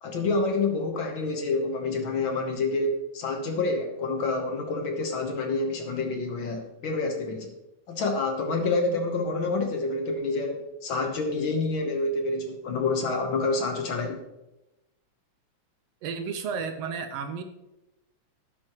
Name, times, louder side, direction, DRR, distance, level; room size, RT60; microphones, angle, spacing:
voice 1, 0.0-7.5 7.9-14.2, left 3 dB, 60° left, 4 dB, 1.3 m, -28 dB
voice 2, 16.0-17.4, right 6 dB, 75° right, 8 dB, 1.5 m, -32 dB
12.0 x 9.6 x 3.0 m, 0.95 s
omnidirectional pair, 3.4 m